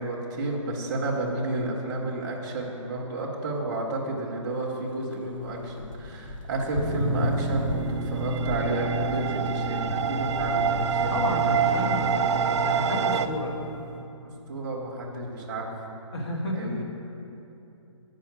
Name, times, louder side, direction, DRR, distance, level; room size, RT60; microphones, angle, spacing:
voice 1, 0.0-11.9 12.2-12.5 14.2-15.7 16.5-16.8, right 2 dB, 10° right, -2 dB, 0.7 m, -31 dB
sound 1, 5.0-12.6, left 1 dB, 75° left, 0.7 m, -37 dB
sound 2, 6.8-14.0, right 2 dB, 15° left, 1.0 m, -32 dB
sound 3, 8.2-13.3, right 6 dB, 60° right, 0.4 m, -27 dB
voice 2, 11.1-13.6 16.1-16.8, left 1 dB, 55° left, 0 dB, 1.4 m, -31 dB
8.3 x 5.1 x 5.9 m, 2.8 s
hypercardioid pair, 175°, 17 cm